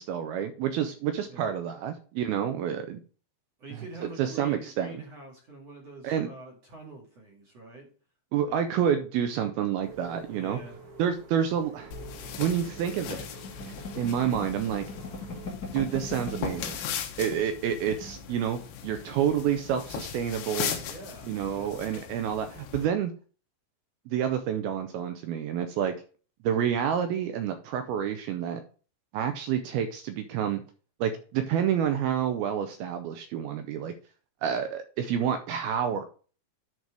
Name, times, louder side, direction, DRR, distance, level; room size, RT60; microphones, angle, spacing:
voice 1, 0.0-3.0 4.2-5.0 6.0-6.3 8.3-10.6 11.0-11.9 12.4-13.3 13.7-14.8 15.7-16.8 17.2-20.8 21.3-23.1 24.1-26.0 26.4-28.6 29.1-30.6 31.0-33.9 34.4-36.0, right 9 dB, 85° right, 8 dB, 2.3 m, -28 dB
voice 2, 3.6-7.9 8.4-8.6 10.3-10.8 20.8-21.9, right 2 dB, 45° right, -1 dB, 2.6 m, -46 dB
sound 1, 9.8-15.5, right 4 dB, 65° right, 4.2 m, -49 dB
sound 2, 11.9-22.9, left 8 dB, 85° left, 3.3 m, -38 dB
sound 3, 12.3-16.9 17.2-17.3 17.6-18.2, left 2 dB, 40° left, 1.4 m, -40 dB
11.0 x 4.1 x 4.8 m, 0.39 s
omnidirectional pair, 4.9 m